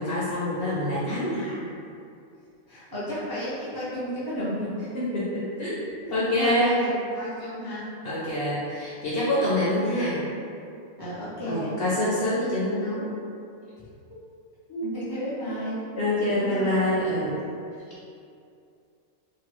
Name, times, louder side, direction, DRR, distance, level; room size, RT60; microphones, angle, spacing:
voice 1, 0.0-1.5 4.9-5.8 6.1-6.7 8.0-10.2 11.5-13.1 14.7-14.9 15.4-15.5 16.0-17.4, left 1 dB, 60° left, -8 dB, 0.6 m, -26 dB
voice 2, 2.7-4.7 6.1-7.8 11.0-11.8 14.8-15.8 16.3-16.8, equal, 30° right, -11 dB, 0.4 m, -32 dB
3.1 x 2.2 x 2.9 m, 2.5 s
omnidirectional pair, 1.4 m